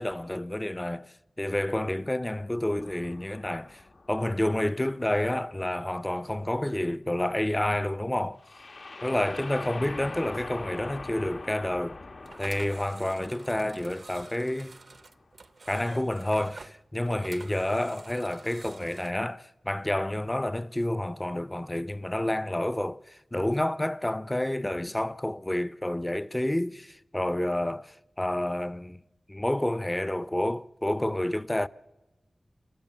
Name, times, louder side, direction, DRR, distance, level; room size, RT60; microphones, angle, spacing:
voice 1, 0.0-3.8 4.1-8.4 9.0-12.0 12.4-14.8 15.7-29.0 29.3-31.7, left 1 dB, 15° left, 0.6 m, -29 dB
sound 1, 2.8-5.6 8.4-15.2, left 3 dB, 65° left, 1.2 m, -44 dB
sound 2, 12.2-19.1, right 3 dB, 65° right, 0.7 m, -49 dB
29.5 x 14.0 x 7.5 m
wide cardioid pair, 65°, 0 cm